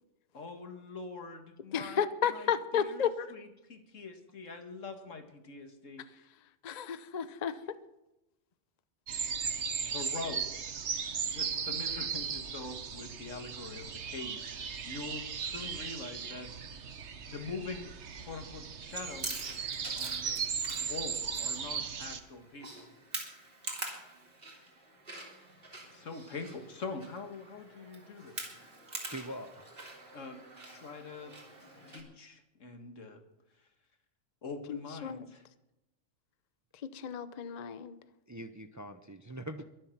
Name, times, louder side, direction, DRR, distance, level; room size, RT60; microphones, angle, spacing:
voice 1, 0.3-3.0 3.3-6.3 9.8-10.5 11.3-16.5 17.2-17.9 18.2-19.4 20.0-20.4 20.7-22.9 25.9-28.5 30.1-31.4 31.9-33.2 34.4-35.4, left 3 dB, 80° left, 6 dB, 2.0 m, -44 dB
voice 2, 1.7-3.3 6.6-7.6 34.7-35.3 36.9-38.0, left 7 dB, 40° left, 12 dB, 0.7 m, -32 dB
sound 1, 9.1-22.2, right 6 dB, 65° right, 1.3 m, -37 dB
Chewing mastication, 18.9-32.0, right 2 dB, 50° right, 3.3 m, -45 dB
voice 3, 29.1-29.6 38.3-39.6, right 1 dB, 20° right, 9 dB, 0.6 m, -42 dB
23.0 x 7.6 x 5.9 m, 0.93 s
omnidirectional pair, 1.3 m